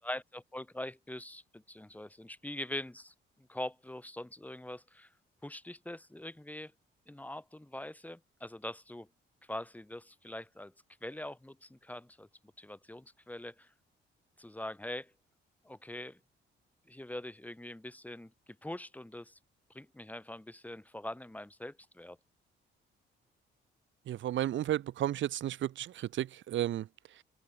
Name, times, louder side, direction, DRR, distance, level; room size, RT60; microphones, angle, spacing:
voice 1, 0.0-3.1 3.5-5.1 5.4-6.7 7.1-9.1 9.5-10.7 11.0-12.3 12.6-13.7 14.4-15.1 15.6-16.2 16.9-18.3 18.6-19.4 19.7-22.2, left 1 dB, 10° left, 4.2 m, -43 dB
voice 2, 24.1-27.2, right 12 dB, 70° right, 1.4 m, -33 dB
open air
cardioid pair, 90°, 20 cm